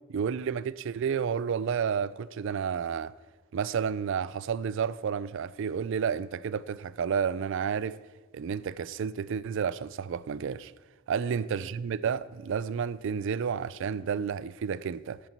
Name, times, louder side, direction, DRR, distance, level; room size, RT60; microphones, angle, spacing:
voice 1, 0.1-3.1 3.5-8.0 8.3-10.7 11.1-15.2, right 7 dB, 60° right, 0.3 m, -31 dB
10.5 x 8.2 x 4.5 m
head